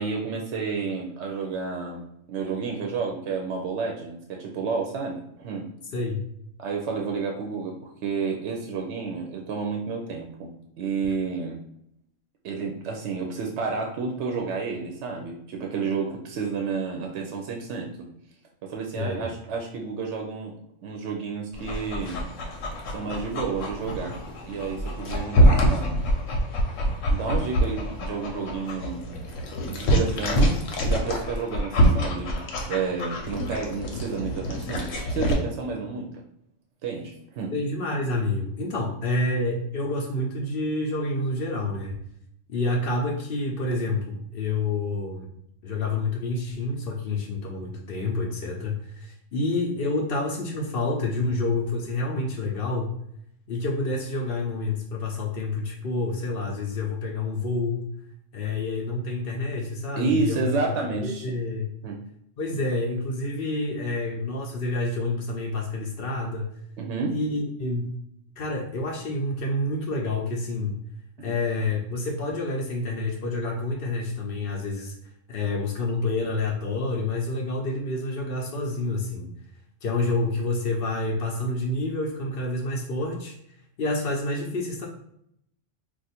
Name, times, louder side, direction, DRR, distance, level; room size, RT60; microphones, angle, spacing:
voice 1, 0.0-5.7 6.6-11.6 12.4-17.9 18.6-22.2 22.9-24.2 24.4-26.0 27.1-29.0 29.6-32.4 32.7-36.1 36.8-37.5 60.0-61.3 61.8-62.0 66.8-67.2 71.2-71.3, right 5 dB, 70° right, 1 dB, 0.8 m, -30 dB
voice 2, 5.9-6.3 19.0-19.3 37.5-42.0 42.5-45.3 45.6-53.0 53.5-57.9 58.3-60.5 61.0-61.8 62.4-66.5 67.1-67.9 68.4-70.8 71.2-74.9 75.3-79.3 79.8-83.4 83.8-84.9, left 2 dB, 60° left, 0 dB, 0.7 m, -28 dB
Dog, 21.5-35.3, equal, 90° left, 1.0 m, -25 dB
2.5 x 2.4 x 4.1 m, 0.74 s
omnidirectional pair, 1.3 m